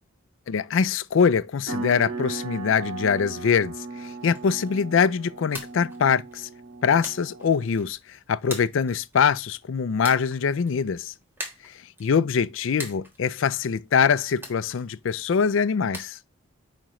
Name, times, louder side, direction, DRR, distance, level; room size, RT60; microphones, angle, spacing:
voice 1, 0.5-6.5 6.8-11.1 11.6-16.2, left 6 dB, 75° left, 0.4 m, -23 dB
sound 1, 1.7-7.9, right 3 dB, 80° right, 1.8 m, -37 dB
sound 2, 1.8-16.1, equal, 10° right, 1.4 m, -45 dB
8.9 x 4.9 x 3.1 m
head